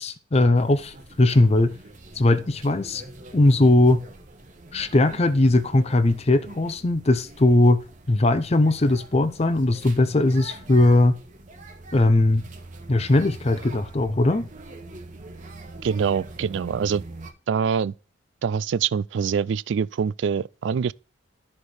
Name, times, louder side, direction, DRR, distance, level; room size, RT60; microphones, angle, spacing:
voice 1, 0.0-1.7 2.2-3.0 3.3-4.0 4.7-7.8 8.1-11.1 11.9-12.4 12.9-14.5, left 2 dB, 30° left, 0.6 m, -19 dB
sound 1, 0.5-17.3, right 2 dB, 40° right, 1.1 m, -43 dB
voice 2, 15.8-17.0 17.5-17.9 18.4-20.9, right 6 dB, 65° right, 0.3 m, -24 dB
12.5 x 4.3 x 4.9 m
head